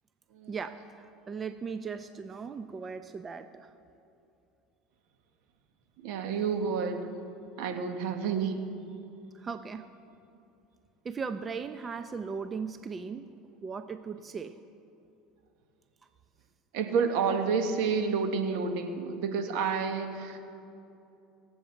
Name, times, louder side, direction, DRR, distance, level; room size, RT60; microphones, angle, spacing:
voice 1, 0.5-3.7 9.3-9.9 11.0-13.3 13.6-14.6, right 5 dB, 25° right, 10 dB, 0.6 m, -38 dB
voice 2, 6.0-7.1 7.6-8.7 16.7-20.4, right 5 dB, 70° right, 6 dB, 1.5 m, -29 dB
23.5 x 8.0 x 4.5 m, 2.8 s
supercardioid pair, 95°, 0 cm